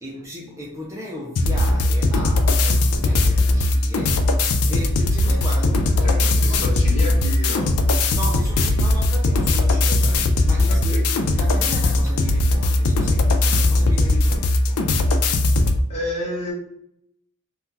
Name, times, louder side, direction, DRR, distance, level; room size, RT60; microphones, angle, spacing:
voice 1, 0.0-4.2 4.7-6.7 8.1-14.8, equal, 15° right, 0.5 m, -35 dB
sound 1, 1.3-15.8, left 2 dB, 75° left, 0.4 m, -19 dB
voice 2, 6.0-7.7 10.0-10.2 10.7-11.0 15.9-16.5, equal, 30° left, 1.2 m, -30 dB
2.8 x 2.2 x 3.7 m
head